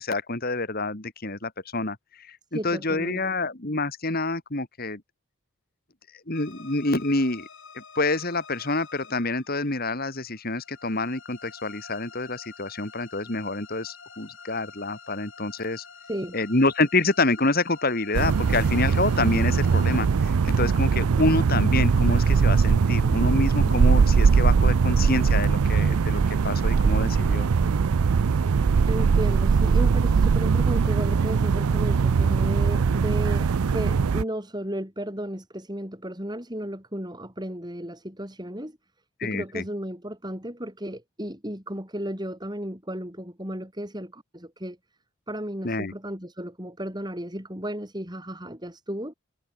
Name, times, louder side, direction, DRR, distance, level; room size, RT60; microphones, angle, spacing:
voice 1, 0.0-5.0 6.3-7.5 7.7-15.8 16.3-27.5 39.2-39.6 45.6-45.9, left 2 dB, 45° left, 2.6 m, -27 dB
voice 2, 2.5-3.2 16.1-16.3 28.9-38.8 39.2-44.8 45.3-49.1, equal, 20° right, 6.2 m, -34 dB
sound 1, 6.3-21.4, left 5 dB, 60° left, 6.6 m, -48 dB
sound 2, 18.1-34.2, right 5 dB, 90° right, 0.5 m, -21 dB
head